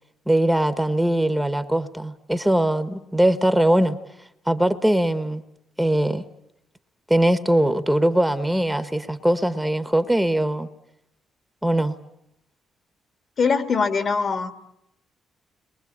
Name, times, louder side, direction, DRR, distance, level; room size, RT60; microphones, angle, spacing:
voice 1, 0.3-4.0 4.5-5.4 5.8-6.2 7.1-10.7 11.6-11.9, right 1 dB, 5° right, 1.2 m, -21 dB
voice 2, 13.4-14.5, left 5 dB, 50° left, 2.0 m, -22 dB
30.0 x 22.5 x 8.6 m
cardioid pair, 90°, 0 cm